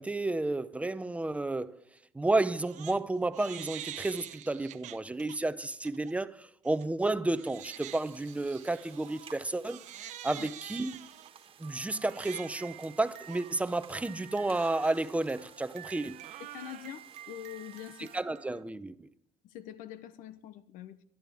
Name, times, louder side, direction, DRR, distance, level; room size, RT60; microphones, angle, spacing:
voice 1, 0.0-1.8 2.1-11.1 11.6-16.2 18.0-19.1, right 2 dB, 10° right, 0.7 m, -32 dB
Crying sobbing, 2.4-3.0 3.3-5.4 5.8-6.1 6.6-18.6, right 12 dB, 60° right, 0.9 m, -47 dB
sound 1, 7.5-18.2, right 8 dB, 40° right, 1.5 m, -57 dB
voice 2, 16.4-18.1 19.4-21.0, left 11 dB, 75° left, 0.8 m, -45 dB
23.0 x 11.5 x 3.5 m
cardioid pair, 115°, 14 cm